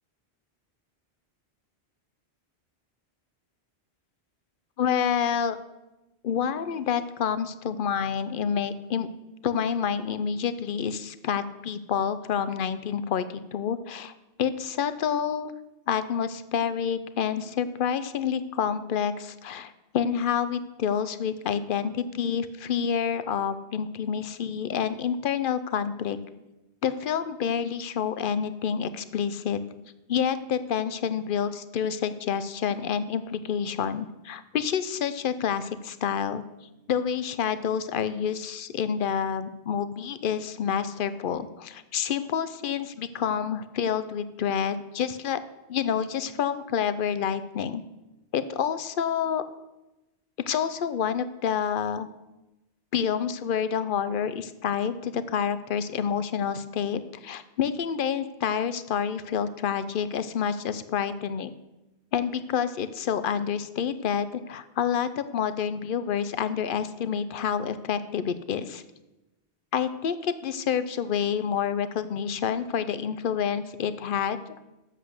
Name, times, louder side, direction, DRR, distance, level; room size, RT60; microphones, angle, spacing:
voice 1, 4.8-5.6 6.2-9.1 9.4-14.1 14.4-15.5 15.9-26.2 26.8-29.6 30.1-36.4 36.9-45.4 45.7-47.8 48.3-49.4 50.5-52.1 52.9-61.5 62.1-68.8 69.7-74.4, left 7 dB, 60° left, 13 dB, 0.7 m, -28 dB
7.9 x 7.5 x 6.4 m, 1.0 s
omnidirectional pair, 1.1 m